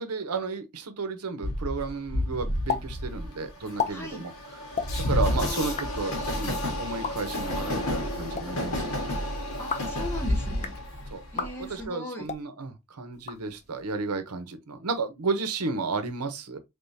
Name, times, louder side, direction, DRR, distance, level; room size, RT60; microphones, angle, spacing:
voice 1, 0.0-4.3 4.6-4.7 5.0-8.9 11.1-16.6, right 4 dB, 90° right, 0.8 m, -33 dB
Train, 1.4-11.8, left 1 dB, 70° left, 1.6 m, -30 dB
sound 1, 2.7-2.8 3.1-3.2 3.6-3.9 4.7-4.9 5.6-5.9 6.9-7.1 8.1-8.4 9.5-9.9 10.5-10.8 11.3-11.5 12.2-12.4 13.1-13.8, left 6 dB, 30° left, 0.5 m, -33 dB
voice 2, 3.9-4.2 5.3-5.9 9.6-10.7 11.3-12.3, left 1 dB, 10° left, 1.5 m, -38 dB
3.8 x 3.6 x 2.7 m
head